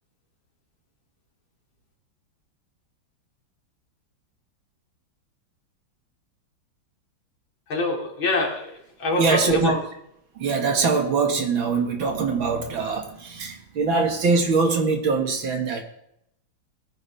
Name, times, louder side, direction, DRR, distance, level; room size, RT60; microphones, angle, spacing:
voice 1, 7.7-9.8, left 2 dB, 75° left, 0 dB, 3.3 m, -25 dB
voice 2, 9.1-9.7 10.3-15.8, right 4 dB, 80° right, 3 dB, 2.6 m, -23 dB
20.0 x 9.6 x 3.5 m, 0.77 s
omnidirectional pair, 2.1 m